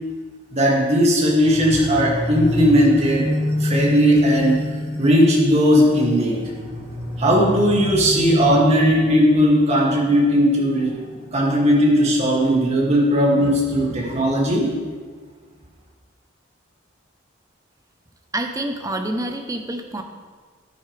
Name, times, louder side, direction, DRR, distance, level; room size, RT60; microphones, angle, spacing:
voice 1, 0.5-3.3 3.6-4.6 5.0-6.4 7.2-10.9 11.3-14.7, equal, 30° right, -4 dB, 2.4 m, -17 dB
sound 1, 1.4-14.2, left 1 dB, 60° left, 2.8 m, -28 dB
voice 2, 18.3-20.0, right 1 dB, 15° right, 5 dB, 0.8 m, -27 dB
13.0 x 10.0 x 3.4 m, 1.5 s
head